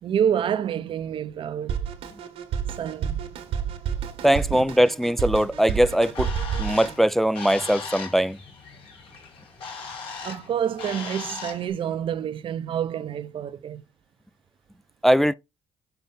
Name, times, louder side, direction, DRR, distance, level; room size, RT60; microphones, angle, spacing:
voice 1, 0.0-1.9 2.8-3.2 4.5-4.6 10.2-13.8, right 9 dB, 60° right, 0.8 m, -28 dB
Drum kit, 1.7-7.0, right 8 dB, 75° right, 1.5 m, -30 dB
sound 1, 2.0-12.2, left 5 dB, 50° left, 4.4 m, -55 dB
voice 2, 4.2-6.3 6.6-8.4 15.0-15.3, equal, ahead, 0.4 m, -20 dB
Bird, 5.8-11.7, left 5 dB, 70° left, 2.4 m, -38 dB
7.0 x 4.0 x 3.9 m
supercardioid pair, 60°, 10 cm